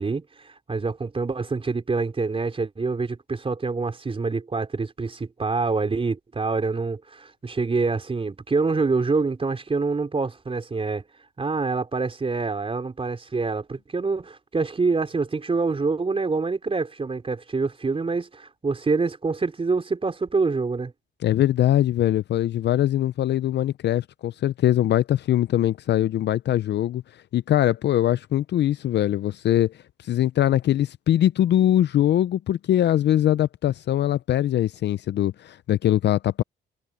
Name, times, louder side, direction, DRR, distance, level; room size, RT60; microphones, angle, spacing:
voice 1, 0.0-11.0 11.4-20.9, right 4 dB, 30° right, 4.3 m, -26 dB
voice 2, 21.2-27.0 27.3-36.4, left 12 dB, 60° left, 0.5 m, -22 dB
cardioid pair, 90°, 20 cm